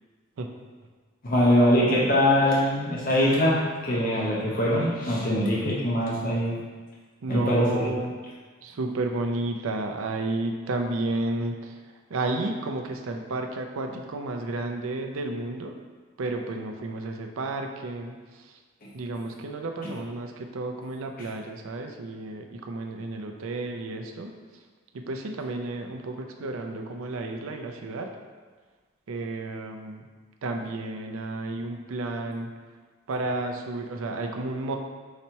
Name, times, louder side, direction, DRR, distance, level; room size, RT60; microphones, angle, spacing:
voice 1, 1.2-6.6 7.3-7.9 18.8-18.9 19.8-19.9, left 1 dB, 40° left, -5 dB, 0.7 m, -23 dB
voice 2, 7.2-8.1 8.6-11.8 12.1-15.7 16.2-18.5 18.9-24.3 24.9-28.1 29.1-30.1 30.4-32.5 33.1-34.8, right 2 dB, 70° right, 4 dB, 0.5 m, -32 dB
4.1 x 2.9 x 4.4 m, 1.4 s
head